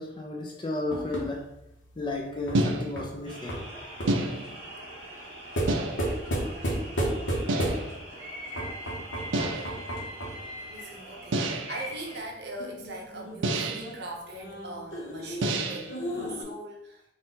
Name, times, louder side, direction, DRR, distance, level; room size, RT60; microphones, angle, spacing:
voice 1, 0.0-1.4 2.0-3.6, left 2 dB, 25° left, 0 dB, 0.6 m, -33 dB
sound 1, 0.9-4.3 5.6-8.1 8.6-10.5 12.6-16.4, right 1 dB, 80° left, 1.0 m, -33 dB
sound 2, 2.5-3.2 4.1-4.7 5.7-6.3 7.5-8.0 9.3-9.8 11.3-11.9 13.4-14.0 15.4-16.0, right 2 dB, 80° right, 0.5 m, -29 dB
sound 3, 3.2-12.2, equal, 30° right, 1.5 m, -42 dB
voice 2, 10.7-17.0, right 1 dB, 60° right, 0 dB, 0.8 m, -41 dB
4.2 x 2.5 x 3.8 m, 0.85 s
head